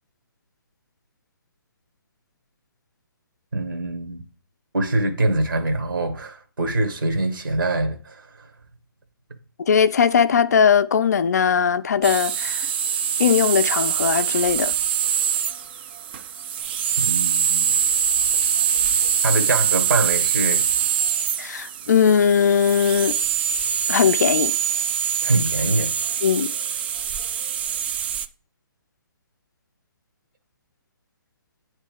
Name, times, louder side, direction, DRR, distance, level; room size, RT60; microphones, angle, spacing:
voice 1, 3.5-4.2 4.7-8.5 17.0-17.8 19.2-20.7 25.2-25.9, right 2 dB, 65° right, 1.2 m, -24 dB
voice 2, 9.7-12.7 13.2-14.7 21.4-23.2 23.9-24.5 26.2-26.5, left 7 dB, 45° left, 0.5 m, -19 dB
sound 1, 12.0-28.3, right 9 dB, 25° right, 0.4 m, -24 dB
8.8 x 3.2 x 5.0 m
figure-of-eight pair, 130°, 12 cm